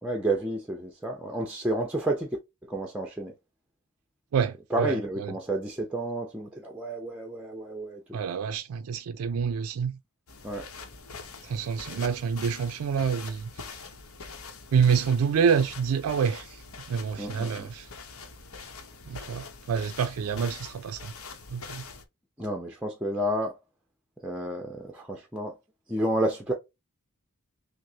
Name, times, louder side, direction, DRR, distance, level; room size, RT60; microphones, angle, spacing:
voice 1, 0.0-2.3 2.6-3.3 4.7-8.0 10.4-10.7 17.2-17.7 22.4-23.6 24.2-25.6 25.9-26.5, right 1 dB, 5° right, 0.6 m, -30 dB
voice 2, 4.3-5.3 8.1-10.0 11.4-13.8 14.7-16.6 16.9-17.9 19.1-21.1 21.5-21.8, right 6 dB, 80° right, 0.4 m, -27 dB
sound 1, 10.3-22.0, left 4 dB, 75° left, 0.9 m, -44 dB
6.2 x 2.1 x 2.7 m
head